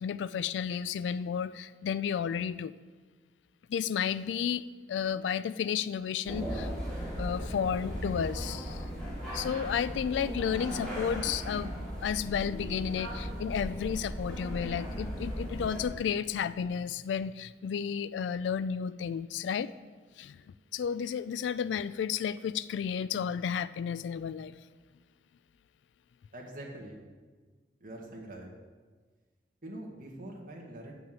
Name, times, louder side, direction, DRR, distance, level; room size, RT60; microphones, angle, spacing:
voice 1, 0.0-2.7 3.7-4.6 4.9-6.7 7.2-8.9 9.3-11.7 12.0-19.7 20.2-20.4 20.7-24.6, left 7 dB, 85° left, 15 dB, 0.3 m, -32 dB
sound 1, 6.3-15.9, equal, 5° left, 3.2 m, -37 dB
voice 2, 26.3-27.0 27.8-28.5 29.6-30.9, right 1 dB, 50° right, -1 dB, 1.7 m, -44 dB
7.4 x 5.9 x 7.7 m, 1.4 s
head